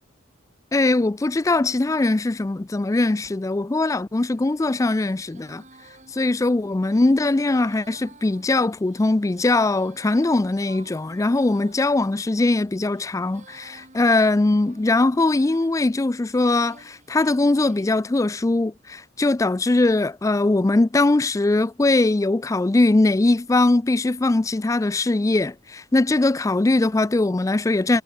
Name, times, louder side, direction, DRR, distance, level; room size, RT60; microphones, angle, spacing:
voice 1, 0.7-5.6 6.1-28.0, left 2 dB, 15° left, 0.3 m, -21 dB
Female singing, 4.3-17.9, right 3 dB, 35° right, 6.9 m, -51 dB
head